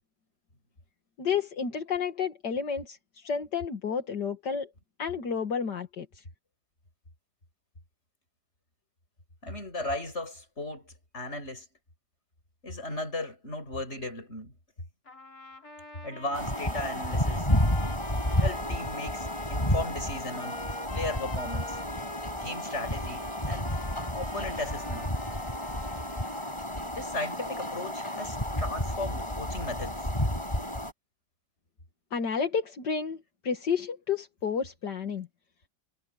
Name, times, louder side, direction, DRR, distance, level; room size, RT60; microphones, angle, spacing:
voice 1, 1.2-4.7 5.0-6.2 32.1-33.2 33.4-35.3, left 6 dB, 75° left, 2.5 m, -31 dB
voice 2, 9.4-11.7 12.6-14.6 16.0-17.5 18.3-20.6 20.9-21.8 22.4-23.8 24.1-25.1 26.8-30.0, left 2 dB, 40° left, 7.5 m, -36 dB
sound 1, 15.1-26.7, left 2 dB, 55° left, 5.1 m, -46 dB
sound 2, 16.3-30.9, left 1 dB, 15° left, 7.6 m, -31 dB
omnidirectional pair, 1.9 m